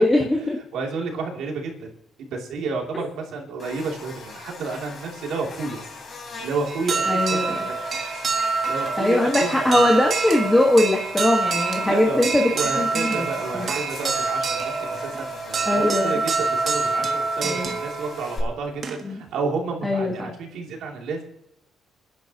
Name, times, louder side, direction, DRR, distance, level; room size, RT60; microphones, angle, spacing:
voice 1, 0.0-0.6 7.1-7.7 9.0-12.4 12.8-13.3 13.5-13.7 15.6-16.2 17.4-17.7 19.0-19.2 19.8-20.3, left 1 dB, 10° left, 0 dB, 1.5 m, -21 dB
voice 2, 0.7-1.9 2.2-5.8 6.4-7.7 8.7-10.1 11.8-21.2, right 4 dB, 85° right, 1 dB, 2.8 m, -31 dB
Buzz, 3.6-18.4, left 4 dB, 35° left, 3.7 m, -40 dB
sound 1, 6.7-19.3, right 4 dB, 45° right, 1.5 m, -26 dB
28.5 x 10.5 x 2.9 m, 0.83 s
cardioid pair, 150°, 0 cm